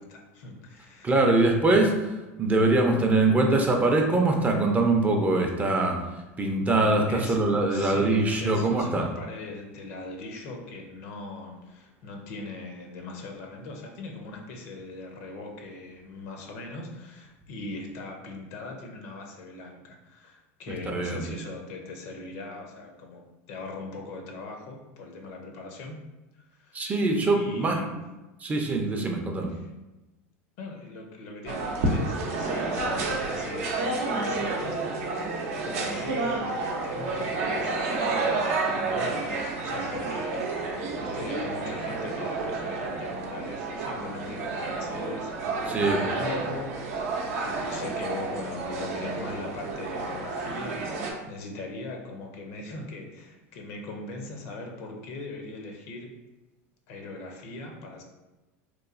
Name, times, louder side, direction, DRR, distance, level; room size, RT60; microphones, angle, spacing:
voice 1, 0.0-1.3 7.1-7.4 7.7-23.2 23.5-26.0 26.3-26.9 27.3-28.0 29.5-29.7 30.6-34.8 35.6-38.2 38.6-56.1 56.9-58.0, left 2 dB, 65° left, 2 dB, 0.6 m, -40 dB
voice 2, 1.0-2.1 2.4-6.0 6.4-9.0 20.9-21.2 26.7-27.8 28.4-29.5 45.7-46.0, right 2 dB, 20° right, 2 dB, 0.4 m, -23 dB
sound 1, 31.5-51.1, right 3 dB, 75° right, 0.5 m, -30 dB
3.0 x 2.3 x 2.4 m, 1.1 s
hypercardioid pair, 105°, 8 cm